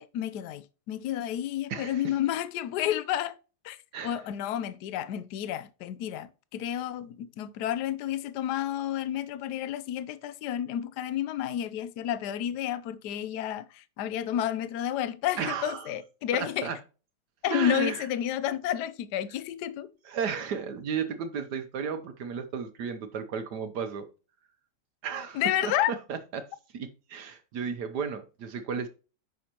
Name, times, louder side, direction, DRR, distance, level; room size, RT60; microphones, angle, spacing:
voice 1, 0.0-3.3 3.6-3.8 4.0-16.7 17.4-19.9 25.3-25.9, left 11 dB, 70° left, 1.2 m, -31 dB
voice 2, 1.7-2.0 3.9-4.2 15.4-15.9 16.3-16.8 17.5-18.1 20.0-24.1 25.0-26.5 26.7-28.9, right 6 dB, 70° right, 1.4 m, -33 dB
9.3 x 6.4 x 2.9 m
omnidirectional pair, 1.9 m